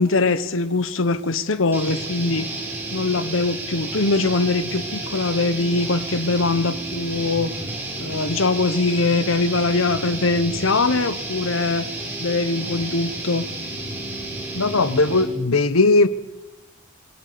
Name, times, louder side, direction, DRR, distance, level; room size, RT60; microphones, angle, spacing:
voice 1, 0.0-2.5 2.9-7.6 8.0-11.9 12.2-13.5, left 3 dB, 65° left, 1.1 m, -22 dB
sound 1, 1.7-15.4, right 2 dB, 10° right, 5.7 m, -31 dB
voice 2, 14.6-16.1, left 3 dB, 90° left, 1.1 m, -18 dB
27.0 x 22.0 x 6.9 m
head